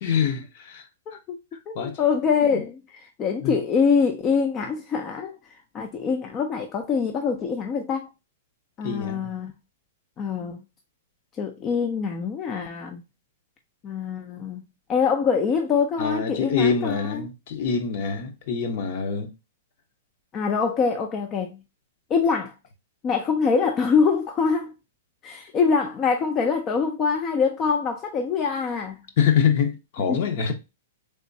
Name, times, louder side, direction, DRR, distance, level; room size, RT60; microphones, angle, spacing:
voice 1, 0.0-0.8 1.1-1.2 1.7-2.0 2.5-2.6 3.4-3.5 8.8-9.3 16.0-19.3 29.2-30.5, left 6 dB, 50° left, 0.8 m, -25 dB
voice 2, 1.1-1.4 1.7-2.8 3.2-5.4 5.7-8.1 8.8-9.5 10.2-10.6 11.4-13.0 13.8-14.6 14.9-17.3 20.3-21.6 22.1-22.5 23.0-24.7 25.2-29.0 30.1-30.2, left 5 dB, 25° left, 0.4 m, -24 dB
3.4 x 3.0 x 2.6 m
hypercardioid pair, 150°, 0 cm